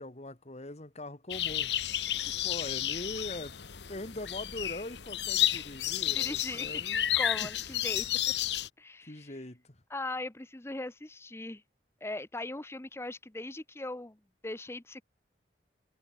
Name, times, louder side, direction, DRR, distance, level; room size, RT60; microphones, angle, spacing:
voice 1, 0.0-1.7 2.3-3.6 3.9-7.5 9.1-9.8, left 1 dB, 40° left, 2.1 m, -42 dB
sound 1, 1.3-8.7, left 12 dB, 75° left, 1.4 m, -32 dB
voice 2, 6.0-6.7 7.1-8.1 8.8-9.3 9.9-11.6 12.0-15.0, left 2 dB, 15° left, 0.8 m, -39 dB
head